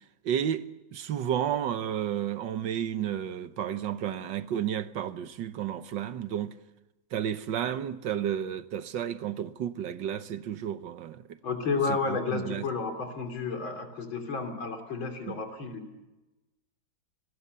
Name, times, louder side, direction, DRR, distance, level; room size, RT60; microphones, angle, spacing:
voice 1, 0.2-0.7 0.9-6.6 7.1-11.4 11.9-12.7 15.3-15.4, right 9 dB, 70° right, 1.7 m, -32 dB
voice 2, 11.4-15.9, left 4 dB, 80° left, 4.1 m, -31 dB
28.0 x 20.0 x 6.8 m
omnidirectional pair, 2.1 m